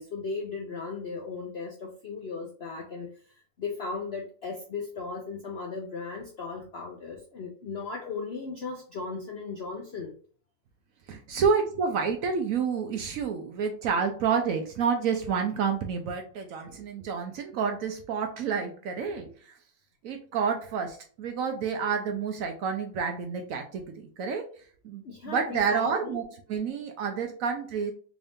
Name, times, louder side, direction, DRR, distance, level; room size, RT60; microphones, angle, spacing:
voice 1, 0.0-10.1 25.0-26.2, left 4 dB, 85° left, 0 dB, 0.5 m, -37 dB
voice 2, 11.1-19.6 20.0-24.4 24.8-27.9, right 6 dB, 75° right, 4 dB, 0.8 m, -29 dB
3.7 x 2.6 x 3.4 m, 0.43 s
omnidirectional pair, 2.0 m